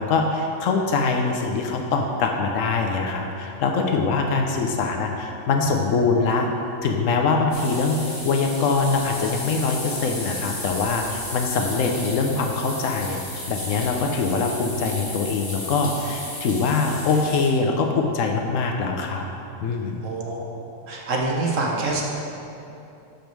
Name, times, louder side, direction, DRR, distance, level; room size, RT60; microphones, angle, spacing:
voice 1, 0.0-6.5 6.8-19.2 19.6-20.0, left 4 dB, 80° left, 3 dB, 1.0 m, -23 dB
sound 1, 7.5-17.5, left 1 dB, 30° left, 1.3 m, -34 dB
voice 2, 20.0-20.5 20.9-22.0, right 3 dB, 75° right, -2 dB, 1.3 m, -25 dB
6.9 x 5.2 x 4.5 m, 2.8 s
omnidirectional pair, 1.3 m